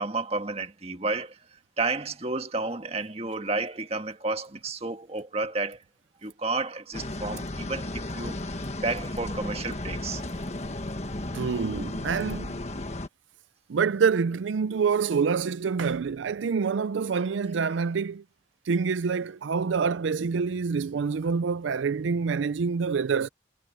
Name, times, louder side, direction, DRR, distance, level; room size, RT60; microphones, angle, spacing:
voice 1, 0.0-5.8 6.2-10.2, right 3 dB, 35° right, 1.7 m, -31 dB
sound 1, 6.9-13.1, left 1 dB, 35° left, 1.5 m, -34 dB
voice 2, 11.3-12.6 13.7-18.2 18.7-23.3, right 5 dB, 90° right, 0.4 m, -26 dB
head